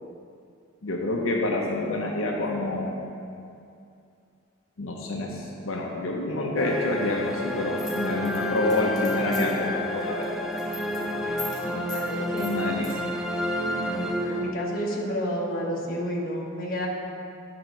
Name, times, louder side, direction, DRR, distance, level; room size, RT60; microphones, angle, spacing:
voice 1, 0.8-3.0 4.8-10.5 12.1-13.0 15.5-15.6, left 2 dB, 85° left, -1 dB, 0.8 m, -28 dB
sound 1, 6.6-14.9, left 1 dB, ahead, 0.4 m, -30 dB
sound 2, 7.8-9.6 10.0-10.2 10.5-11.0 11.4-11.6 11.9-12.0 12.4-12.9, left 3 dB, 20° left, 1.6 m, -38 dB
voice 2, 11.6-12.5 13.6-16.9, equal, 45° left, -2 dB, 1.2 m, -31 dB
9.3 x 3.8 x 6.1 m, 2.5 s
head